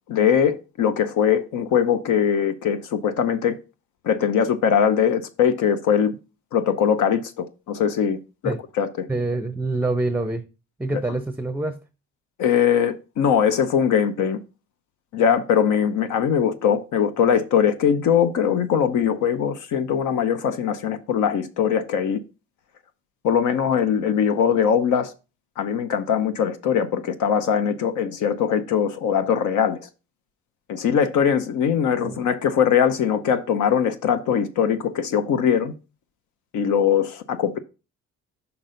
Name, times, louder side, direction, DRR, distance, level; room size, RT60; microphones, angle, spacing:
voice 1, 0.1-3.6 4.0-6.2 6.5-9.1 12.4-14.4 15.1-22.2 23.2-25.1 25.6-29.9 30.7-35.7 36.5-37.6, left 8 dB, 75° left, 0.8 m, -21 dB
voice 2, 9.1-10.4 10.8-11.8 32.0-32.2, right 2 dB, 5° right, 0.5 m, -26 dB
6.0 x 5.6 x 3.8 m
cardioid pair, 90°, 30 cm